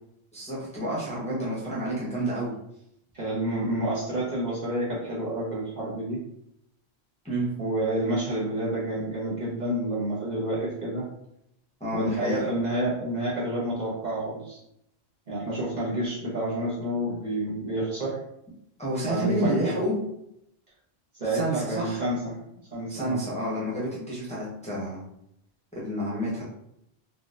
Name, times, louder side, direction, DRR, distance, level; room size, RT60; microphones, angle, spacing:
voice 1, 0.3-2.5 7.2-7.5 11.8-12.4 18.8-19.9 21.3-22.0 22.9-25.0 25.7-26.4, right 1 dB, 5° left, -7 dB, 0.9 m, -29 dB
voice 2, 3.1-6.2 7.6-11.0 11.9-14.6 15.3-18.2 19.0-19.7 21.1-22.4 22.7-23.2, right 1 dB, 45° right, -7 dB, 1.1 m, -29 dB
4.0 x 2.4 x 2.5 m, 0.79 s
omnidirectional pair, 1.1 m